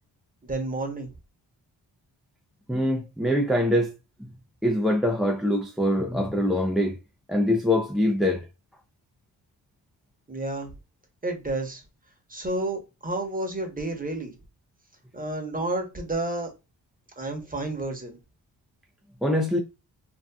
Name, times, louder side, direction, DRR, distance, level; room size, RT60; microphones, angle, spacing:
voice 1, 0.4-1.1 10.3-10.7 11.2-11.8 12.3-14.3 15.1-16.5 17.2-18.2, right 2 dB, 20° right, 1.0 m, -30 dB
voice 2, 2.7-3.9 4.6-7.0 7.3-8.5 19.2-19.6, left 1 dB, ahead, 0.4 m, -23 dB
2.7 x 2.3 x 2.3 m
cardioid pair, 55°, 44 cm